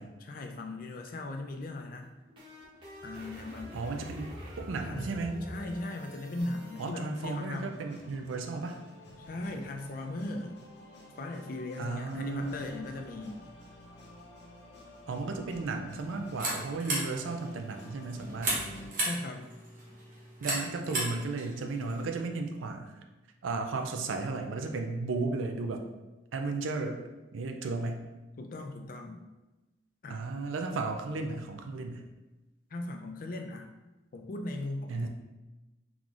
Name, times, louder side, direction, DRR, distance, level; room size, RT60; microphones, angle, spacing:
voice 1, 0.2-2.1 3.0-3.8 4.8-5.0 5.5-7.7 9.2-10.6 11.2-13.4 19.0-19.5 28.4-29.2 30.0-30.4 32.7-33.7 34.1-35.1, left 2 dB, 45° left, 4 dB, 0.4 m, -38 dB
sound 1, 1.9-6.9, equal, 25° right, 0.7 m, -46 dB
voice 2, 3.7-4.3 4.6-5.4 6.8-8.8 11.8-12.6 15.1-18.6 20.4-23.0 23.4-25.8 26.3-27.0 27.3-28.1 30.1-32.0 34.9-35.1, right 3 dB, 85° right, 4 dB, 0.4 m, -34 dB
sound 2, 6.3-18.9, left 1 dB, 60° left, 0.8 m, -51 dB
sound 3, 15.9-22.1, right 2 dB, 45° right, 0.9 m, -36 dB
3.8 x 3.0 x 2.4 m, 1.1 s
head